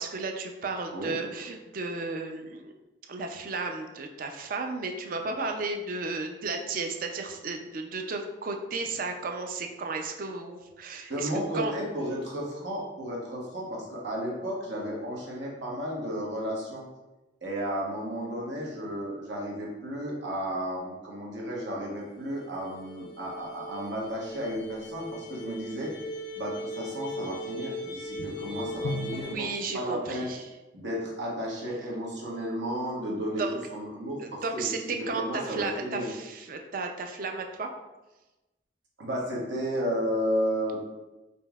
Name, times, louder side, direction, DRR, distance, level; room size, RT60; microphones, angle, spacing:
voice 1, 0.0-2.7 3.1-11.7 29.1-30.5 33.4-33.6 34.2-37.7, right 3 dB, 50° right, 4 dB, 0.4 m, -34 dB
voice 2, 11.1-16.8 17.4-25.9 26.4-29.5 29.7-30.3 30.7-33.4 33.7-34.7 35.0-36.1 39.0-40.8, equal, 80° right, -3 dB, 1.0 m, -33 dB
sound 1, 22.0-22.1 22.4-22.5 22.7-29.4, left 1 dB, 80° left, 0.4 m, -38 dB
5.2 x 2.7 x 2.3 m, 1.1 s
head